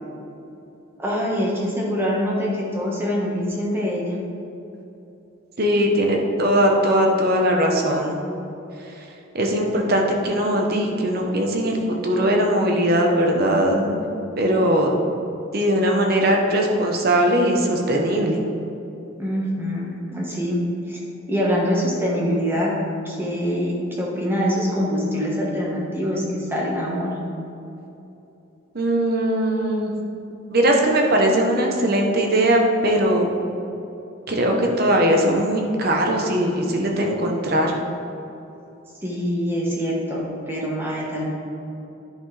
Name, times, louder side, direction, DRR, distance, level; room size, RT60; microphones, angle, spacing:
voice 1, 1.0-4.2 19.2-20.6 20.9-21.0 21.3-22.7 23.0-27.2 39.0-41.2, equal, 10° right, -4 dB, 1.3 m, -24 dB
voice 2, 5.6-8.2 9.3-14.0 14.4-14.9 15.5-18.4 28.7-29.9 30.5-33.3 34.3-37.8, right 1 dB, 45° right, 1 dB, 1.0 m, -20 dB
10.0 x 5.8 x 3.4 m, 2.9 s
head